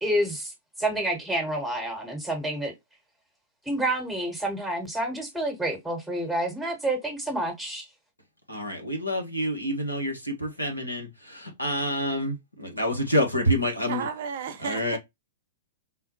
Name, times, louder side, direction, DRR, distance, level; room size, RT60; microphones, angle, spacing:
voice 1, 0.0-0.5 0.8-2.7 3.7-7.9, right 1 dB, ahead, 1.1 m, -28 dB
voice 2, 8.5-14.1 14.6-15.0, equal, 90° left, 1.0 m, -28 dB
voice 3, 13.8-15.0, right 6 dB, 50° right, 0.5 m, -33 dB
3.7 x 2.1 x 2.8 m
figure-of-eight pair, 105°, 0 cm